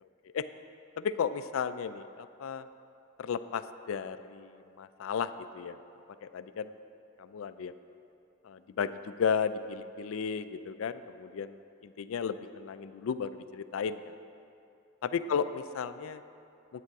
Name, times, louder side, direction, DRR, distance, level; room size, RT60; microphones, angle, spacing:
voice 1, 1.0-2.6 3.2-4.5 4.8-5.3 5.5-5.7 6.2-6.7 7.3-7.7 8.5-8.9 9.2-11.5 12.0-14.1 15.1-16.2, left 6 dB, 70° left, 13 dB, 0.4 m, -33 dB
9.1 x 8.5 x 4.7 m, 2.6 s
head